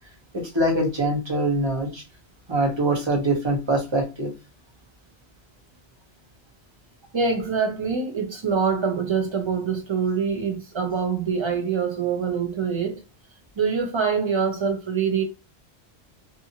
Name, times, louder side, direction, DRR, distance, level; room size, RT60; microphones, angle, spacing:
voice 1, 0.3-2.0 2.5-4.3, right 1 dB, 25° right, 0.9 m, -23 dB
voice 2, 7.1-13.0 13.6-15.2, right 6 dB, 50° right, 0.3 m, -25 dB
2.6 x 2.4 x 2.7 m
omnidirectional pair, 1.1 m